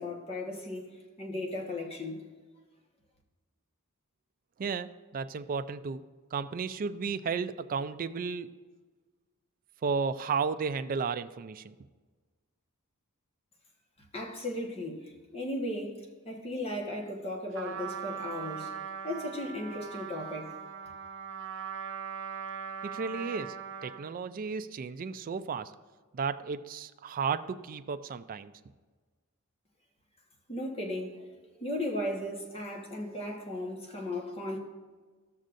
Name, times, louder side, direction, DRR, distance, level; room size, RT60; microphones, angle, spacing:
voice 1, 0.0-2.2 14.1-18.7 19.0-20.5 30.5-31.3 31.6-34.6, left 1 dB, 25° left, 1.3 m, -36 dB
voice 2, 4.6-6.1 6.3-8.5 9.8-11.7 22.8-25.7 26.1-28.5, right 5 dB, 40° right, 0.4 m, -33 dB
Trumpet, 17.5-24.2, right 7 dB, 60° right, 0.9 m, -40 dB
15.0 x 6.4 x 2.6 m
head